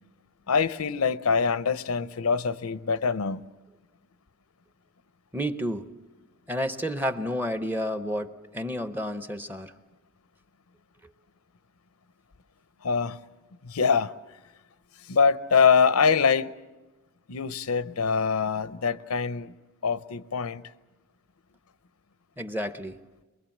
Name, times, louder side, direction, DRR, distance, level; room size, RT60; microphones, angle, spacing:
voice 1, 0.5-3.4 12.8-13.2 13.6-14.1 15.1-16.5 17.3-19.5 19.8-20.6, left 5 dB, 85° left, 0.7 m, -24 dB
voice 2, 5.3-5.9 6.5-9.7 22.4-23.0, equal, 10° right, 0.8 m, -30 dB
23.5 x 22.5 x 7.3 m
head